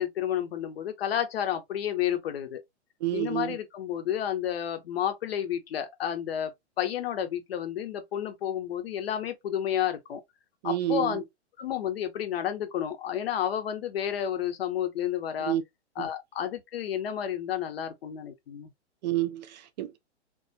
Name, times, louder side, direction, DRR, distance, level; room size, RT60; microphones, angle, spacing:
voice 1, 0.0-2.6 3.1-6.5 6.8-10.2 10.6-11.2 11.6-15.6 16.0-18.7, left 10 dB, 60° left, 0.8 m, -31 dB
voice 2, 3.0-3.6 10.6-11.2 15.5-15.6 16.0-16.1 19.0-20.0, right 12 dB, 40° right, 0.5 m, -29 dB
2.3 x 2.3 x 2.6 m
hypercardioid pair, 120°, 34 cm